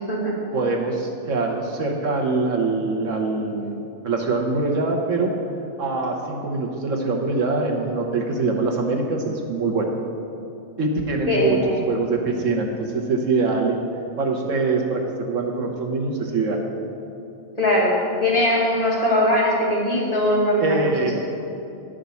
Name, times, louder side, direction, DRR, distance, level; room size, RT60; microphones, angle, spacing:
voice 1, 0.0-0.3 11.3-11.9 17.6-21.1, left 1 dB, 25° left, -7 dB, 2.3 m, -21 dB
voice 2, 0.5-5.3 5.8-9.9 10.8-11.6 11.9-13.8 14.2-16.6 20.6-21.1, right 3 dB, 70° right, 1 dB, 1.2 m, -24 dB
10.5 x 5.1 x 6.9 m, 2.8 s
omnidirectional pair, 1.4 m